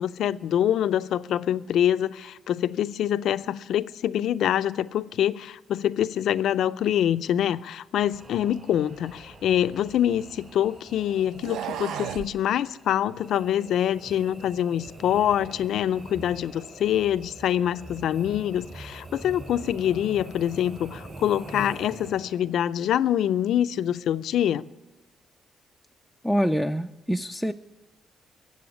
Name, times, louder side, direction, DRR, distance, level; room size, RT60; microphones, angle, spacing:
voice 1, 0.0-24.6, left 10 dB, 75° left, 0.5 m, -25 dB
sound 1, 8.0-22.6, right 2 dB, 30° right, 4.6 m, -44 dB
sound 2, 9.1-10.6 11.3-12.3, right 8 dB, 80° right, 0.5 m, -36 dB
voice 2, 26.2-27.5, equal, ahead, 0.4 m, -25 dB
16.5 x 7.7 x 9.9 m
cardioid pair, 90°, 0 cm